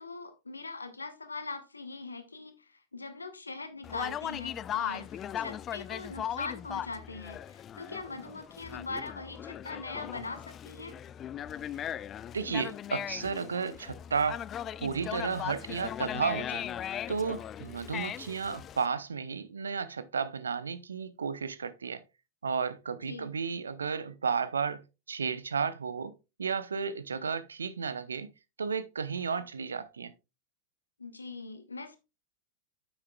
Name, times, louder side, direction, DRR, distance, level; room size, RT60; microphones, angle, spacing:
voice 1, 0.0-11.0 23.0-23.3 31.0-32.0, left 3 dB, 80° left, 1.3 m, -41 dB
Conversation, 3.8-18.9, left 10 dB, 30° left, 0.3 m, -38 dB
voice 2, 12.3-14.4 14.8-16.7 17.1-22.0 22.4-24.8 25.1-26.1 26.4-28.3 28.6-30.1, right 5 dB, 70° right, 0.7 m, -33 dB
9.5 x 7.9 x 2.4 m
figure-of-eight pair, 90°, 0 cm